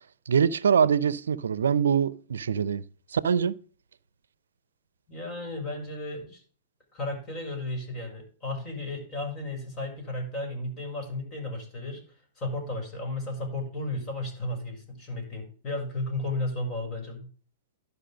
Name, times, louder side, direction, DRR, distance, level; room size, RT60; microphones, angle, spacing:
voice 1, 0.3-2.8 3.1-3.5, right 7 dB, 80° right, 0.6 m, -24 dB
voice 2, 5.1-6.4 6.9-12.0 12.4-17.3, left 2 dB, 35° left, 6.5 m, -34 dB
12.5 x 5.6 x 5.2 m
hypercardioid pair, 110°, 0 cm